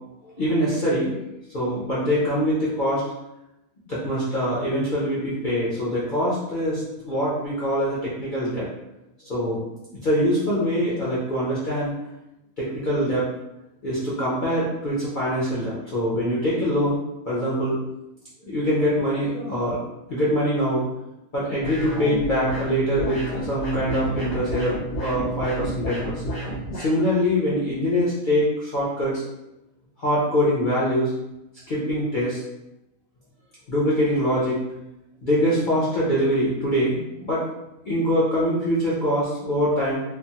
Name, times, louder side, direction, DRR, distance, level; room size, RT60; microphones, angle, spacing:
voice 1, 0.4-1.2 1.5-3.0 3.9-8.7 9.3-11.9 12.6-13.3 13.8-17.0 17.3-17.7 18.4-19.8 20.1-20.8 21.3-26.2 26.7-29.2 30.0-31.1 31.7-32.4 33.7-34.8 35.2-37.5 37.9-40.0, equal, 60° left, -8 dB, 0.5 m, -24 dB
sound 1, 21.6-26.9, right 1 dB, 85° left, 1.5 m, -30 dB
3.3 x 2.0 x 2.7 m, 0.91 s
omnidirectional pair, 1.6 m